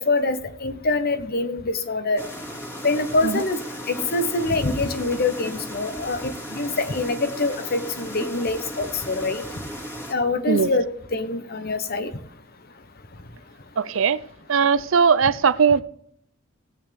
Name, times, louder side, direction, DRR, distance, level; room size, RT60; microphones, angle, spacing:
voice 1, 0.0-2.2 2.8-3.6 3.9-9.4 10.1-12.1, left 3 dB, 45° left, 1.0 m, -25 dB
sound 1, 2.2-10.1, equal, 15° left, 2.1 m, -35 dB
voice 2, 13.8-14.2 14.5-15.8, right 6 dB, 70° right, 0.5 m, -19 dB
18.0 x 8.3 x 3.5 m
head